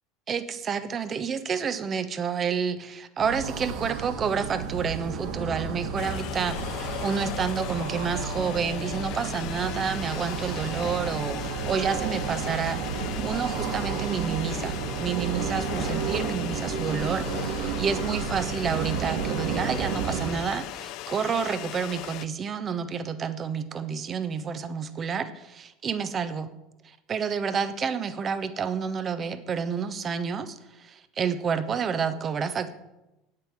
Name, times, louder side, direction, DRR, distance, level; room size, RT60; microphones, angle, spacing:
voice 1, 0.3-26.5 26.8-32.8, right 6 dB, 35° right, 11 dB, 1.1 m, -29 dB
sound 1, 3.2-20.3, right 6 dB, 65° right, 1.7 m, -32 dB
sound 2, 6.0-22.3, left 14 dB, 60° left, 0.5 m, -38 dB
9.1 x 8.1 x 7.2 m, 0.95 s
hypercardioid pair, 85°, 0 cm